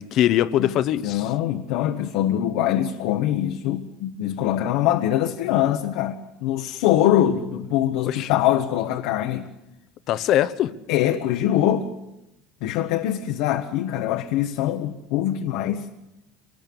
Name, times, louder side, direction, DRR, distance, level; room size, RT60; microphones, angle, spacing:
voice 1, 0.0-1.3 8.0-8.3 10.1-10.7, left 12 dB, 45° left, 0.8 m, -22 dB
voice 2, 1.0-9.5 10.9-11.9 12.6-15.9, left 12 dB, 70° left, 1.2 m, -23 dB
24.5 x 19.5 x 7.0 m
cardioid pair, 155°, 0 cm